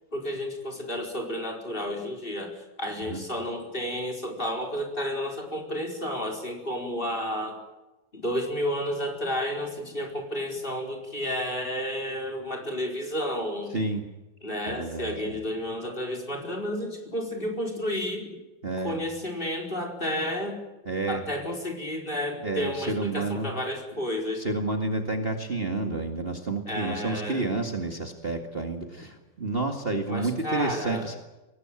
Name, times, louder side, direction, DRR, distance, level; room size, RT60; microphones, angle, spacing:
voice 1, 0.1-7.6 8.1-13.7 14.4-18.4 18.8-20.6 21.1-24.4 26.7-27.5 30.1-31.1, equal, 25° left, 2 dB, 4.7 m, -31 dB
voice 2, 13.7-14.0 14.7-15.2 18.6-18.9 20.9-21.2 22.4-23.5 24.3-31.2, right 2 dB, 30° right, 4 dB, 2.2 m, -30 dB
23.5 x 18.5 x 9.0 m, 1.1 s
omnidirectional pair, 2.0 m